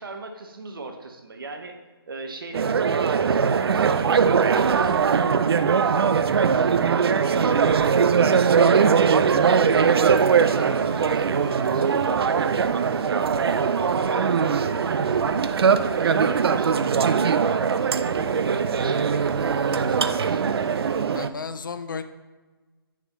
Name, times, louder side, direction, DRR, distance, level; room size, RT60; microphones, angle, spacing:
voice 1, 0.0-1.8 2.1-6.2 6.5-7.8 8.3-12.7 13.1-16.9 18.4-20.5, right 3 dB, 60° right, 5 dB, 0.9 m, -37 dB
sound 1, 2.5-21.3, right 6 dB, 80° right, 0.4 m, -21 dB
sound 2, 7.0-21.0, right 3 dB, 15° right, 0.5 m, -41 dB
voice 2, 21.1-22.0, left 5 dB, 55° left, 10 dB, 0.4 m, -34 dB
6.0 x 5.6 x 3.0 m, 1.3 s
hypercardioid pair, 175°, 13 cm